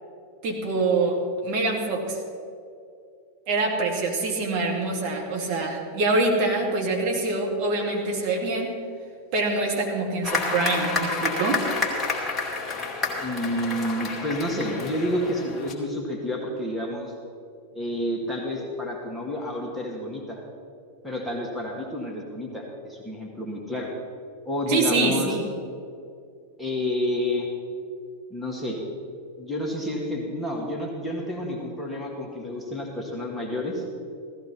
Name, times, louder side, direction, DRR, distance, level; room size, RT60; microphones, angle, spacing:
voice 1, 0.4-2.2 3.5-8.8 9.3-11.7 24.7-25.5, right 3 dB, 40° right, -1 dB, 2.6 m, -25 dB
sound 1, 10.2-15.7, left 3 dB, 15° left, 2.4 m, -29 dB
voice 2, 13.2-17.1 17.7-20.4 21.0-23.9 24.5-25.4 26.6-27.5 28.3-28.8 29.4-33.8, left 1 dB, ahead, -2 dB, 2.3 m, -29 dB
16.0 x 14.5 x 4.4 m, 2.4 s
figure-of-eight pair, 90°, 0 cm